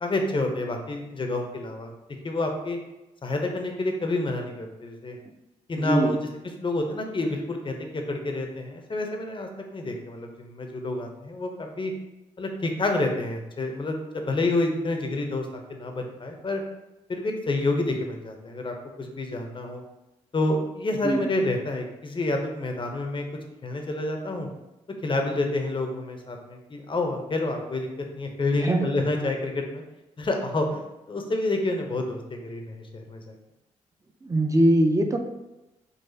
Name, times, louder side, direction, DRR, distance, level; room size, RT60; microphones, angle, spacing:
voice 1, 0.0-1.9 2.2-2.8 3.2-5.2 5.7-6.2 6.6-11.9 12.4-16.6 17.1-19.8 20.3-23.2 23.6-24.5 25.0-29.8 30.2-30.8 31.1-33.3, left 2 dB, 35° left, 3 dB, 0.7 m, -28 dB
voice 2, 5.8-6.1 21.0-21.3 28.6-28.9 34.2-35.2, right 1 dB, 20° right, 5 dB, 0.5 m, -22 dB
3.9 x 2.4 x 2.7 m, 0.98 s
supercardioid pair, 50°, 15 cm